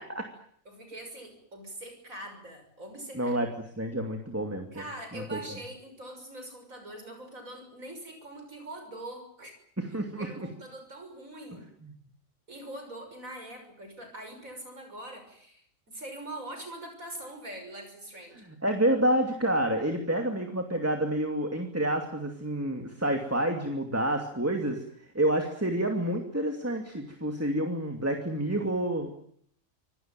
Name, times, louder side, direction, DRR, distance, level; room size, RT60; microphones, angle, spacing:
voice 1, 0.7-3.4 4.7-9.6 10.2-11.7 12.5-18.5, right 1 dB, 85° right, 6 dB, 6.8 m, -43 dB
voice 2, 3.1-3.5 3.8-4.8 5.1-5.4 9.8-10.5 11.8-11.9 18.4-24.8 25.1-29.1, right 1 dB, 10° right, 4 dB, 2.6 m, -28 dB
26.5 x 18.5 x 9.1 m, 0.65 s
omnidirectional pair, 1.4 m